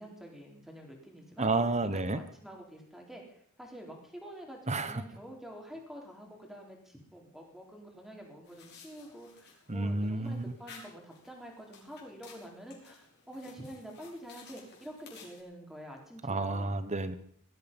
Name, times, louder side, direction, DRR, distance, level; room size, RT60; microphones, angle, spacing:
voice 1, 0.0-1.5 1.9-16.8, equal, ahead, 0 dB, 3.9 m, -47 dB
voice 2, 1.4-2.2 4.7-5.0 9.7-10.5 16.2-17.2, right 2 dB, 30° right, 12 dB, 1.2 m, -30 dB
sound 1, 8.4-15.4, left 5 dB, 50° left, 4.6 m, -55 dB
18.5 x 13.0 x 5.5 m, 0.65 s
head